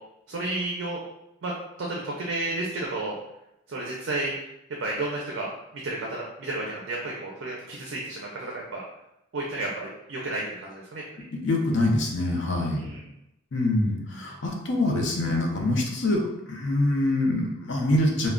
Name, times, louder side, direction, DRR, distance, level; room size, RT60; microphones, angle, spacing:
voice 1, 0.3-1.0 1.4-1.5 1.8-3.2 3.7-4.3 4.8-5.5 5.7-8.8 9.3-11.0 12.7-13.0, right 2 dB, 60° right, -2 dB, 0.4 m, -32 dB
voice 2, 11.3-12.9 13.5-18.3, left 1 dB, 60° left, 1 dB, 0.5 m, -25 dB
2.3 x 2.1 x 3.6 m, 0.85 s
head